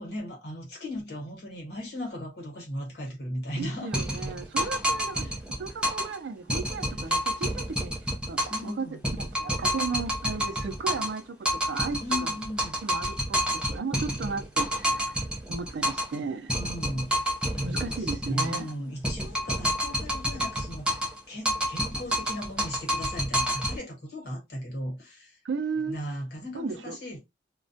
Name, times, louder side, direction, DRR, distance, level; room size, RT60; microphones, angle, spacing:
voice 1, 0.0-3.9 5.1-5.4 8.5-9.0 12.0-12.8 16.5-17.2 17.5-21.0 21.3-25.4 25.8-27.2, equal, 60° left, 1.1 m, -37 dB
voice 2, 3.6-5.3 5.6-8.9 9.2-12.3 12.8-15.2 15.5-16.5 17.6-18.7 25.4-26.0 26.5-27.0, right 4 dB, 70° right, 0.4 m, -35 dB
sound 1, 3.9-6.2 6.5-8.7 9.0-11.2 11.4-16.2 16.5-18.7 19.0-21.2 21.4-23.8, equal, 5° right, 0.5 m, -29 dB
2.3 x 2.1 x 2.6 m
head